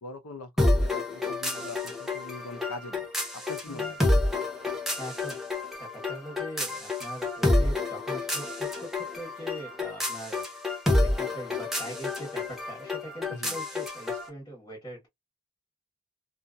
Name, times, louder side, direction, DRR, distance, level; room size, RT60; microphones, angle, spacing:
voice 1, 0.0-3.1 3.5-4.1 13.3-13.6, left 2 dB, 85° left, 0.7 m, -42 dB
sound 1, 0.6-14.3, left 2 dB, ahead, 0.7 m, -29 dB
voice 2, 5.0-5.4 5.8-10.5 10.9-15.1, equal, 20° left, 1.2 m, -42 dB
2.7 x 2.4 x 2.2 m
head